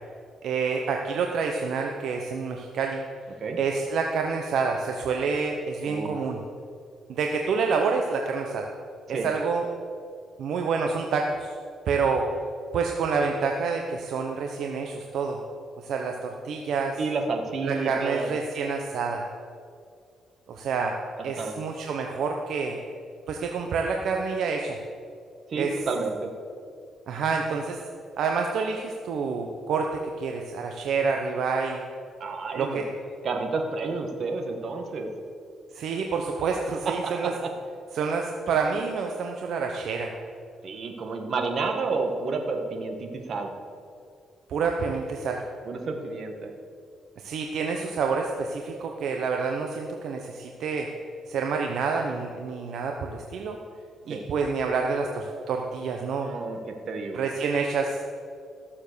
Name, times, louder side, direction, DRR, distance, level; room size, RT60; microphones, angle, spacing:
voice 1, 0.4-3.0 3.6-6.4 7.1-8.7 9.1-9.7 10.4-11.6 11.9-12.3 12.7-15.4 15.8-17.0 17.6-19.3 20.5-21.0 21.2-22.8 23.3-24.8 25.5-25.8 27.1-27.8 28.2-31.8 32.5-32.9 35.7-37.3 37.9-40.1 44.5-45.4 47.2-50.9 51.3-53.6 54.1-56.3 57.1-58.0, right 5 dB, 70° right, 2 dB, 1.0 m, -28 dB
voice 2, 17.0-18.3 21.4-21.6 25.5-26.3 32.2-32.8 33.2-35.1 36.9-37.5 40.6-43.5 45.6-46.5 54.1-54.2 56.2-56.6 56.9-57.2, right 4 dB, 55° right, 4 dB, 1.8 m, -30 dB
14.5 x 7.2 x 6.9 m, 2.3 s
cardioid pair, 90°, 0 cm